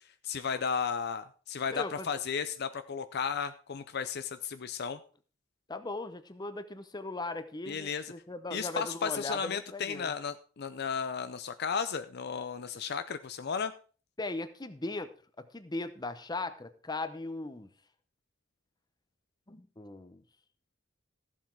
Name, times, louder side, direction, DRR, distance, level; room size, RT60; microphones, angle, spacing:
voice 1, 0.2-5.0 7.7-8.1 8.5-13.7, left 6 dB, 55° left, 11 dB, 0.6 m, -34 dB
voice 2, 1.7-2.1 5.7-10.1 14.2-15.1 15.4-17.7 19.5-20.2, left 2 dB, 20° left, 11 dB, 0.8 m, -38 dB
14.5 x 7.4 x 4.7 m, 0.40 s
head